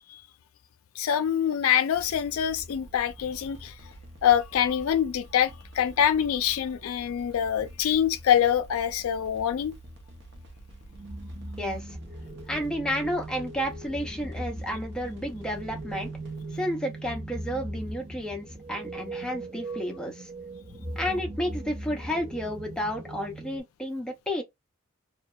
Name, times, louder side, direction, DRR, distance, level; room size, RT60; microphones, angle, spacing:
voice 1, 1.0-3.7 4.2-9.7, left 9 dB, 85° left, 0.3 m, -25 dB
sound 1, 1.9-16.5, right 1 dB, 55° right, 0.6 m, -48 dB
sound 2, 10.9-23.6, right 2 dB, 25° right, 0.9 m, -39 dB
voice 2, 11.6-11.9 12.5-16.1 16.5-20.3 21.0-24.4, equal, 5° left, 0.4 m, -31 dB
2.7 x 2.1 x 2.2 m
head